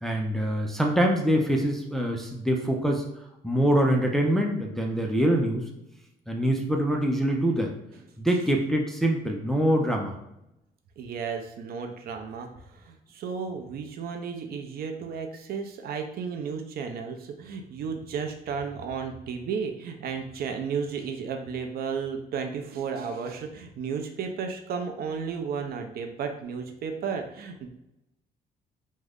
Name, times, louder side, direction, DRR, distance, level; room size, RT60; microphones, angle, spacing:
voice 1, 0.0-3.0 3.4-5.7 6.3-7.7 8.2-10.2, right 1 dB, ahead, 1 dB, 0.4 m, -24 dB
voice 2, 11.0-27.7, right 6 dB, 65° right, 4 dB, 0.5 m, -33 dB
3.6 x 2.1 x 3.4 m, 0.84 s
cardioid pair, 140°, 17 cm